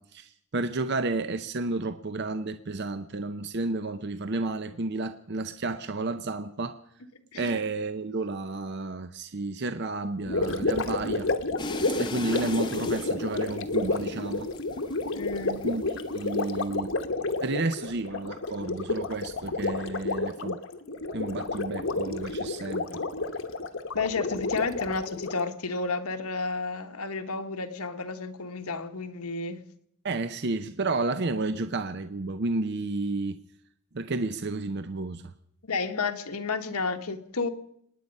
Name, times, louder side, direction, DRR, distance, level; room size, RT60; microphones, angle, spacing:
voice 1, 0.0-6.8 7.3-11.3 12.0-14.5 15.6-16.9 17.4-20.6 21.1-23.0 30.0-33.4 33.9-35.3, right 3 dB, 50° right, 0.6 m, -31 dB
Gurgling, 10.2-25.5, left 3 dB, 60° left, 1.1 m, -30 dB
sound 1, 11.6-15.7 16.1-16.7, left 2 dB, 20° left, 0.8 m, -37 dB
voice 2, 15.1-15.7 23.9-29.6 35.6-37.5, left 4 dB, 85° left, 1.4 m, -31 dB
27.0 x 9.9 x 5.4 m
head